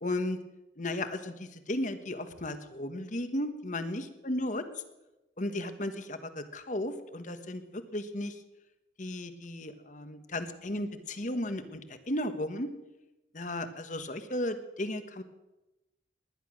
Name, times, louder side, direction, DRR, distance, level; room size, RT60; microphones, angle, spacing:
voice 1, 0.0-0.4 0.8-4.6 5.4-8.4 9.0-11.8 12.1-12.7 13.3-15.2, left 1 dB, 45° left, 10 dB, 1.3 m, -35 dB
19.5 x 11.0 x 6.4 m, 1.0 s
head